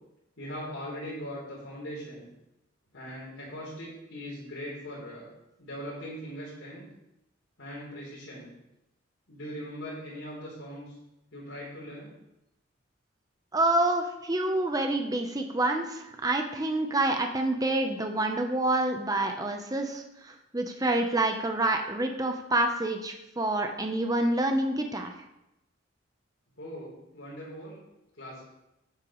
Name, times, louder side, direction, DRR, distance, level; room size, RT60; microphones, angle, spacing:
voice 1, 0.4-2.3 2.9-5.3 5.6-6.8 7.6-8.5 9.3-11.0 11.3-12.1 26.6-27.8 28.2-28.4, equal, 80° left, -8 dB, 3.7 m, -40 dB
voice 2, 13.5-25.1, right 2 dB, 20° right, 4 dB, 0.8 m, -27 dB
12.0 x 9.0 x 3.1 m, 0.89 s
head